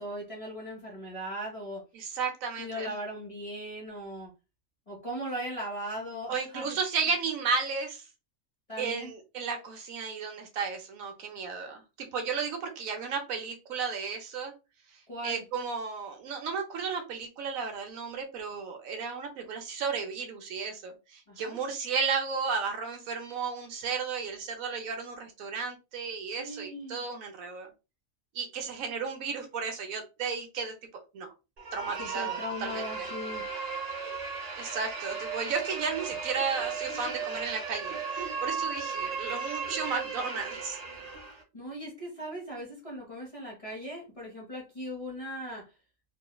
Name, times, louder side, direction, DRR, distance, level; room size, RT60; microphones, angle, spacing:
voice 1, 0.0-1.8 2.6-4.3 4.9-6.8 8.7-9.1 15.1-15.4 21.3-21.6 26.4-27.0 32.0-33.5 41.5-45.7, equal, 30° left, -4 dB, 0.7 m, -38 dB
voice 2, 1.9-2.9 6.3-8.1 8.8-14.5 14.9-27.7 28.3-30.8 31.1-31.3 31.7-33.1 34.6-40.8, right 5 dB, 75° right, 4 dB, 1.0 m, -34 dB
sound 1, 31.6-41.4, right 5 dB, 50° right, 0.5 m, -36 dB
3.0 x 2.0 x 2.2 m, 0.28 s
omnidirectional pair, 1.5 m